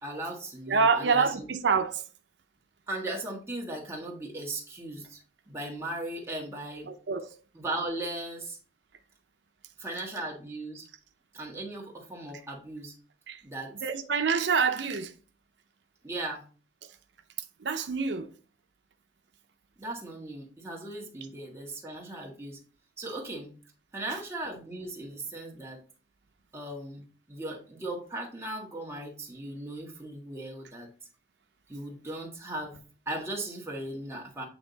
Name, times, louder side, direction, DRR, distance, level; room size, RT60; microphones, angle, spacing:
voice 1, 0.0-1.5 2.9-6.9 7.5-8.6 9.8-10.9 11.3-13.0 13.4-13.7 16.0-16.4 19.8-22.6 23.0-23.6 23.9-25.8 26.5-30.9 31.7-32.8 33.0-34.4, right 1 dB, 15° right, 1.5 m, -37 dB
voice 2, 0.7-2.0 6.9-7.3 13.3-13.4 13.8-15.1 17.6-18.3 24.1-24.2, right 5 dB, 85° right, 0.6 m, -26 dB
8.6 x 3.5 x 4.0 m
head